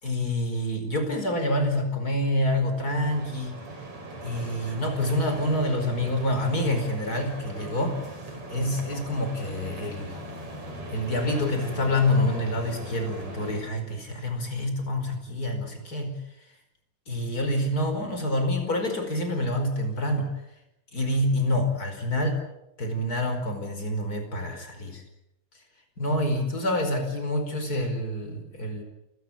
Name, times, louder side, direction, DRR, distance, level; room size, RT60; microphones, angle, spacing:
voice 1, 0.0-3.6 4.2-8.0 8.5-10.2 10.9-16.2 17.1-20.3 20.9-22.4 22.8-25.0 26.0-28.8, left 1 dB, 20° left, 6 dB, 4.6 m, -27 dB
sound 1, 2.8-13.6, right 1 dB, 35° right, 6.9 m, -39 dB
29.0 x 16.5 x 8.8 m, 0.85 s
omnidirectional pair, 5.9 m